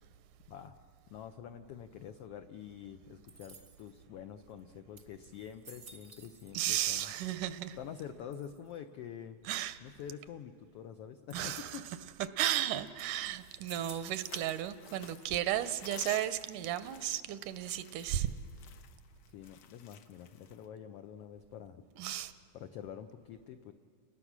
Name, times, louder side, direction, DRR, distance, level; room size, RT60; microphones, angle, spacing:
voice 1, 1.1-7.1 7.8-9.4 9.8-11.8 19.3-21.8 22.5-23.7, left 9 dB, 85° left, 1.3 m, -47 dB
sound 1, 3.3-4.0 4.6-4.7 5.0-6.7 7.0-7.6 8.3-8.8 11.3-12.0 12.5-12.6 13.0-14.7 15.0-15.6 16.3-16.9, right 4 dB, 45° right, 0.9 m, -55 dB
voice 2, 6.5-7.8 9.5-9.8 11.3-11.8 12.4-18.3 22.0-22.3, right 12 dB, 90° right, 2.3 m, -34 dB
sound 2, 13.7-20.6, left 9 dB, 70° left, 1.7 m, -53 dB
29.5 x 20.0 x 6.1 m
omnidirectional pair, 3.6 m